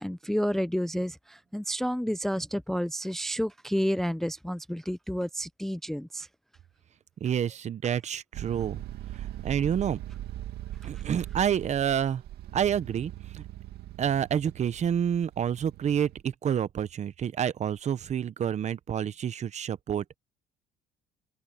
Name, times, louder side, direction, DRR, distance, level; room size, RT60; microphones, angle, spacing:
voice 1, 0.0-6.3, equal, ahead, 0.4 m, -30 dB
voice 2, 7.2-8.8 9.2-10.0 10.8-12.2 12.5-13.4 14.0-20.2, right 9 dB, 45° right, 0.9 m, -28 dB
sound 1, 8.3-16.2, right 13 dB, 75° right, 2.2 m, -40 dB
open air
cardioid pair, 110°, 17 cm